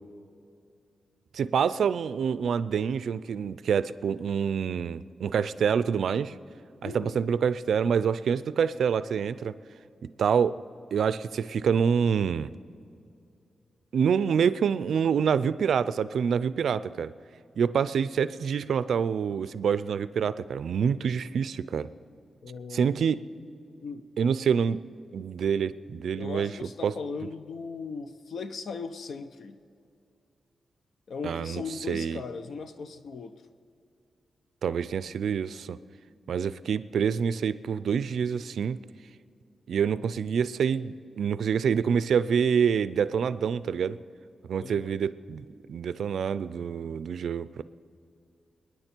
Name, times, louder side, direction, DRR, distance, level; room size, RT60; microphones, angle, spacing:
voice 1, 1.3-6.4 6.8-9.5 10.2-10.6 10.9-12.5 13.9-17.1 17.6-21.9 22.7-23.3 24.2-24.8 25.1-26.5 26.8-26.9 31.2-31.6 31.9-32.2 34.6-35.8 36.3-38.8 39.7-44.0 44.5-47.6, right 7 dB, 80° right, 15 dB, 0.4 m, -26 dB
voice 2, 6.8-7.2 22.4-23.2 23.8-24.0 26.1-29.6 31.1-33.3 44.6-45.0, left 5 dB, 65° left, 10 dB, 0.8 m, -38 dB
29.0 x 9.9 x 4.5 m, 2.5 s
wide cardioid pair, 140°, 0 cm